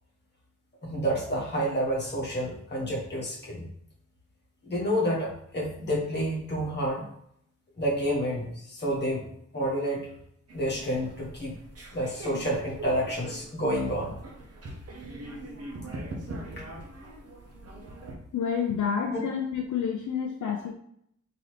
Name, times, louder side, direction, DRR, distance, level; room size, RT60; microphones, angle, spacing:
voice 1, 0.8-3.7 4.6-7.0 7.8-9.2 9.5-10.1 10.5-11.6 11.9-14.2 19.1-19.2, equal, 35° left, -5 dB, 1.4 m, -29 dB
sound 1, 10.5-18.1, right 1 dB, 50° right, 0.8 m, -42 dB
voice 2, 18.3-20.7, left 7 dB, 75° left, 2 dB, 0.5 m, -29 dB
3.8 x 2.9 x 3.2 m, 0.69 s
wide cardioid pair, 165°, 30 cm